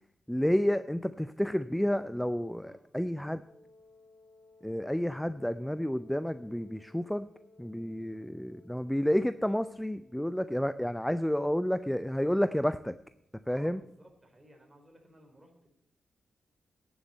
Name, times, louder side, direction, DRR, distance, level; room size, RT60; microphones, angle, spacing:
voice 1, 0.3-3.4 4.6-7.3 7.6-12.9 13.5-13.8, equal, 5° left, 13 dB, 0.5 m, -30 dB
Wind instrument woodwind instrument, 3.5-11.3, left 2 dB, 30° left, 2.3 m, -60 dB
voice 2, 13.5-15.7, right 1 dB, 20° right, 2 dB, 4.6 m, -57 dB
10.5 x 7.2 x 8.8 m, 0.76 s
hypercardioid pair, 40°, 0 cm